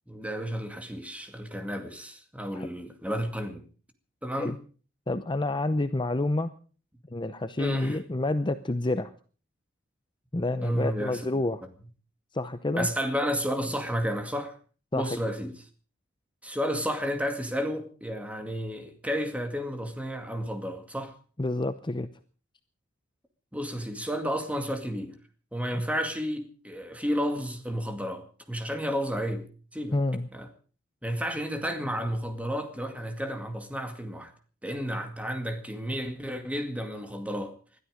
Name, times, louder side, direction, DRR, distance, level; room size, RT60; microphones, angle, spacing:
voice 1, 0.1-3.7 4.2-4.6 7.6-8.0 10.6-11.3 12.8-14.6 14.9-15.5 16.4-21.2 23.5-25.1 25.5-30.0 30.3-30.5 31.0-34.3 34.6-37.5, equal, 5° right, 2.2 m, -32 dB
voice 2, 5.1-6.5 7.1-9.1 10.3-11.6 12.3-12.9 14.9-15.2 21.4-22.1 29.9-30.3, left 2 dB, 25° left, 0.7 m, -28 dB
21.0 x 13.0 x 5.1 m
head